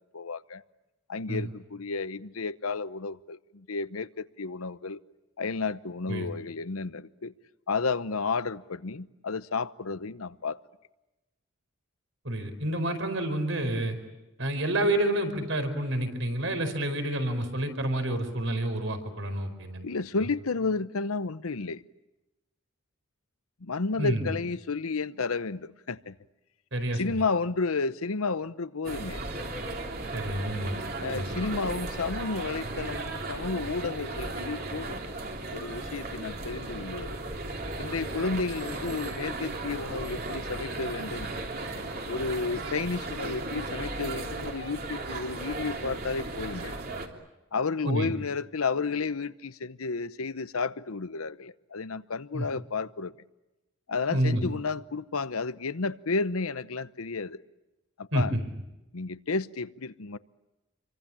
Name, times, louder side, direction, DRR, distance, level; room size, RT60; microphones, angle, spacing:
voice 1, 0.1-0.6 1.1-5.0 5.4-7.3 7.7-10.6 19.8-21.8 23.6-26.1 26.9-29.2 31.0-35.1 35.5-37.2 37.8-41.3 42.1-46.7 47.5-53.1 53.9-57.4 58.0-58.3 58.9-60.2, left 4 dB, 90° left, 0.9 m, -32 dB
voice 2, 12.2-14.0 14.4-19.9 24.0-24.3 26.7-27.2 30.1-30.8 31.1-31.4 47.8-48.1 52.3-52.5 54.1-54.4 58.1-58.4, right 1 dB, 65° right, 4.8 m, -29 dB
sound 1, 28.8-47.1, right 2 dB, 45° right, 3.2 m, -36 dB
28.5 x 24.0 x 8.8 m
head